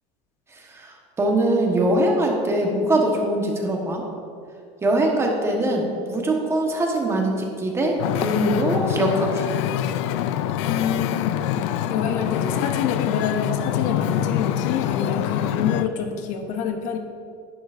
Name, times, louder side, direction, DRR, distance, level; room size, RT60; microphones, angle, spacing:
voice 1, 0.7-4.0 4.8-9.4, right 1 dB, 20° right, 0 dB, 1.3 m, -22 dB
Wind / Ocean, 8.0-15.9, left 11 dB, 85° left, 0.4 m, -25 dB
voice 2, 10.7-11.5 11.9-17.0, left 7 dB, 60° left, 5 dB, 0.9 m, -27 dB
11.0 x 9.5 x 2.6 m, 2.4 s
cardioid pair, 140°, 15 cm